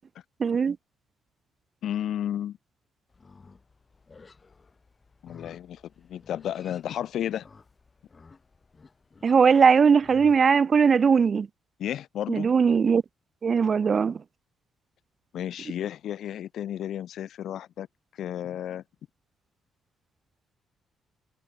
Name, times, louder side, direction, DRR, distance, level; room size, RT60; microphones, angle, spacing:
voice 1, 0.4-0.8 9.2-11.5 12.3-13.0 13.4-14.2, right 6 dB, 45° right, 0.3 m, -20 dB
voice 2, 1.8-2.6 5.2-7.5 11.8-12.5 15.3-17.9 18.2-18.8, left 10 dB, 70° left, 1.2 m, -32 dB
Livestock farm animals working animals, 3.1-10.4, left 4 dB, 30° left, 5.8 m, -54 dB
cardioid pair, 90°, 0 cm